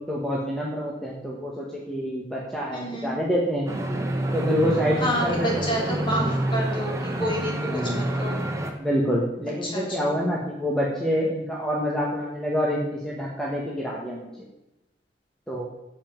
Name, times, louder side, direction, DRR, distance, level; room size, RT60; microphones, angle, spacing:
voice 1, 0.1-3.7 4.3-5.7 7.6-8.0 8.7-14.3 15.5-15.6, equal, 5° left, -4 dB, 1.7 m, -27 dB
voice 2, 2.7-3.1 5.0-8.4 9.6-10.2, equal, 30° left, -3 dB, 3.7 m, -29 dB
sound 1, 3.7-8.7, right 1 dB, 20° right, 1.3 m, -28 dB
8.8 x 7.3 x 7.4 m, 0.96 s
head